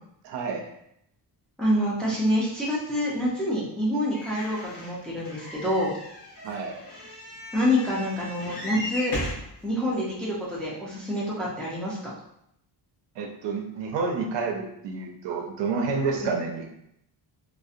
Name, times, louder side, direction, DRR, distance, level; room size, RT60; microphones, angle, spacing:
voice 1, 0.2-0.6 6.4-6.8 13.2-16.7, right 4 dB, 75° right, 2 dB, 0.6 m, -29 dB
voice 2, 1.6-5.9 7.5-9.1 9.6-12.1 16.2-16.4, left 1 dB, ahead, -6 dB, 0.4 m, -27 dB
sound 1, 4.1-9.5 10.2-10.3 10.6-10.7, left 1 dB, 50° left, 0.9 m, -37 dB
2.6 x 2.1 x 2.4 m, 0.76 s
wide cardioid pair, 155°, 44 cm